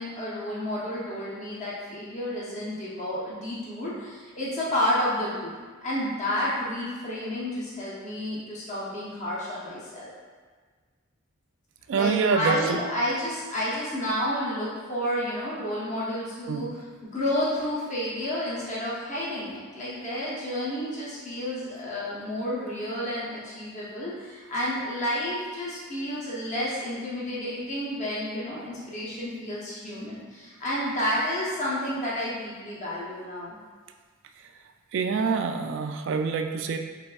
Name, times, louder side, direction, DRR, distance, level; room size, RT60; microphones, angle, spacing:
voice 1, 0.0-5.5 5.8-10.1 11.9-33.5, left 1 dB, 35° left, -8 dB, 0.8 m, -30 dB
voice 2, 11.9-12.8 16.5-16.7 34.9-36.8, right 5 dB, 60° right, 6 dB, 0.3 m, -26 dB
5.2 x 3.2 x 2.3 m, 1.5 s
head